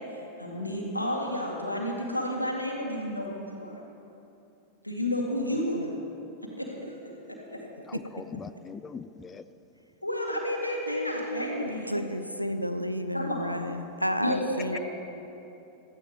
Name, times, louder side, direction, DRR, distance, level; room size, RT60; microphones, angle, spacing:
voice 1, 0.1-3.8 4.8-5.8 6.6-7.0 7.5-7.6 10.0-12.0 13.1-13.7 14.2-14.8, left 1 dB, 90° left, -1 dB, 2.1 m, -31 dB
voice 2, 7.9-9.4, left 6 dB, 20° left, 13 dB, 0.4 m, -42 dB
voice 3, 10.9-14.8, equal, 90° right, 9 dB, 0.7 m, -32 dB
17.0 x 14.0 x 3.6 m, 2.9 s
figure-of-eight pair, 90°, 0 cm